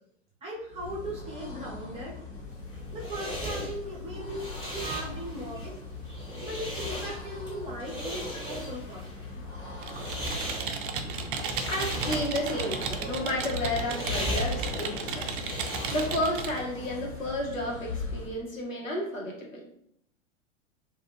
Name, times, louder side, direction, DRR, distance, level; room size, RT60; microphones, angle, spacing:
voice 1, 0.4-2.6 2.9-5.7 6.4-9.1, equal, 15° right, -3 dB, 0.7 m, -38 dB
sound 1, 0.6-18.4, left 3 dB, 60° left, 1.3 m, -40 dB
sound 2, 2.5-16.4, right 1 dB, 10° left, 1.1 m, -38 dB
Computer keyboard, 9.8-16.6, right 5 dB, 45° right, 0.4 m, -35 dB
voice 2, 11.6-19.7, left 1 dB, 80° left, -2 dB, 1.1 m, -32 dB
2.4 x 2.4 x 3.4 m, 0.72 s
figure-of-eight pair, 100°, 39 cm